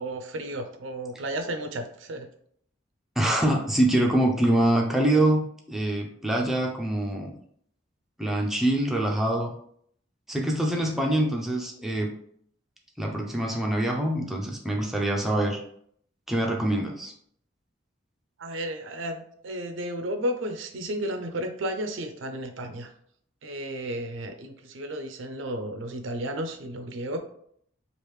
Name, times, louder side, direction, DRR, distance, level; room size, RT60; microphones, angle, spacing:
voice 1, 0.0-2.3 10.9-11.1 18.4-22.9 23.4-27.2, right 1 dB, 80° right, 7 dB, 0.5 m, -33 dB
voice 2, 3.2-7.3 8.2-9.5 10.3-12.1 13.0-15.6 16.3-17.1, right 1 dB, ahead, -1 dB, 0.4 m, -25 dB
3.3 x 2.4 x 3.1 m, 0.66 s
head